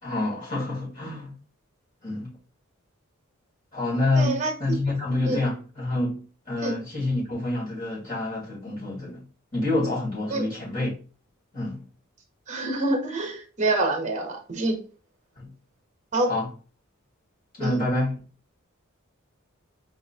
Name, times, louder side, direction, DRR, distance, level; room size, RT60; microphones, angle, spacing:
voice 1, 0.0-1.3 2.0-2.3 3.7-9.2 9.5-10.9 11.5-11.8 15.4-15.5 16.3-16.5 17.6-18.2, left 2 dB, 40° left, 2.1 m, -27 dB
voice 2, 4.1-4.5 5.3-5.4 6.6-6.8 10.3-10.5 12.5-14.8 16.1-16.3 17.6-17.8, right 2 dB, 35° right, 1.0 m, -26 dB
4.8 x 2.8 x 2.7 m
head